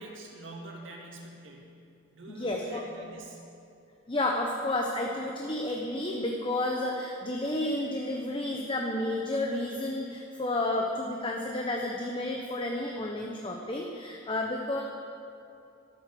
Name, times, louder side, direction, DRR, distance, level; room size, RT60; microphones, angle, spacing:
voice 1, 0.0-1.7 2.1-3.4, right 1 dB, 65° right, -1 dB, 2.4 m, -45 dB
voice 2, 2.3-2.8 4.1-14.8, left 1 dB, 25° left, 1 dB, 0.9 m, -31 dB
13.5 x 11.5 x 6.8 m, 2.6 s
head